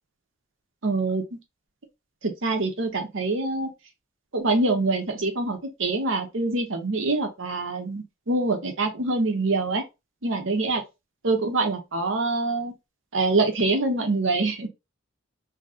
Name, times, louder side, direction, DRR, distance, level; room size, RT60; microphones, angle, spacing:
voice 1, 0.8-1.4 2.2-3.7 4.3-9.8 10.2-10.8 11.2-12.7 13.1-14.7, right 3 dB, 70° right, 0.9 m, -25 dB
2.9 x 2.8 x 3.7 m
head